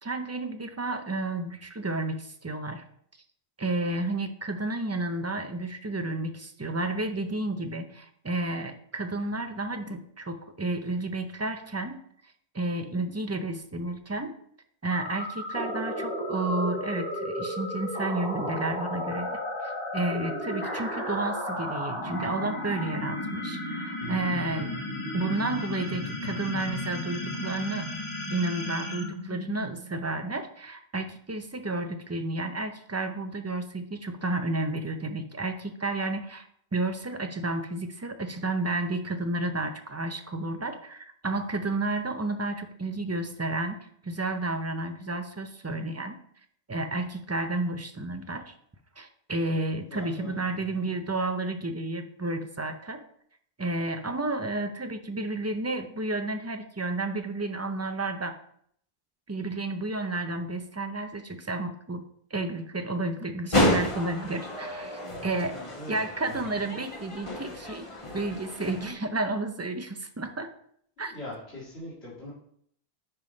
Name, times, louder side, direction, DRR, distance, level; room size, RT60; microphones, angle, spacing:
voice 1, 0.0-2.8 3.6-12.0 12.5-14.3 14.8-19.3 19.6-24.8 25.1-27.9 28.3-36.5 36.7-43.8 44.0-46.2 46.7-48.5 49.0-53.0 53.6-58.3 59.3-62.0 62.3-65.6 65.9-67.9 68.1-70.5 71.0-71.1, right 2 dB, 20° right, 7 dB, 0.4 m, -31 dB
sound 1, 14.9-30.0, left 1 dB, 55° left, 2.7 m, -34 dB
voice 2, 49.9-50.9 65.4-66.6 71.0-72.3, left 1 dB, 85° left, -10 dB, 2.3 m, -42 dB
sound 2, 63.5-68.9, left 1 dB, 30° left, 1.2 m, -30 dB
10.0 x 3.6 x 3.9 m, 0.65 s
omnidirectional pair, 1.0 m